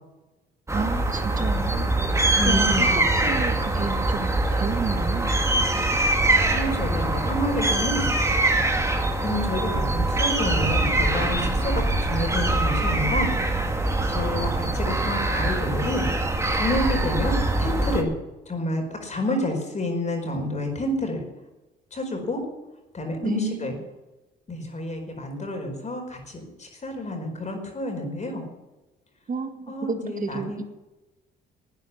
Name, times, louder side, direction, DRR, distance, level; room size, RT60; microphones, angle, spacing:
sound 1, 0.7-18.0, right 2 dB, 15° right, 2.2 m, -23 dB
voice 1, 0.7-2.0 2.5-2.9 3.2-5.4 23.2-23.8 29.3-30.6, right 5 dB, 40° right, 7 dB, 1.9 m, -31 dB
voice 2, 2.3-2.9 5.9-8.0 9.2-13.3 14.1-16.1 16.5-18.1 18.5-21.2 21.9-22.4 22.9-23.8 24.5-28.4 29.7-30.6, left 1 dB, 35° left, 3 dB, 5.0 m, -29 dB
12.0 x 9.5 x 9.8 m, 1.1 s
cardioid pair, 90°, 20 cm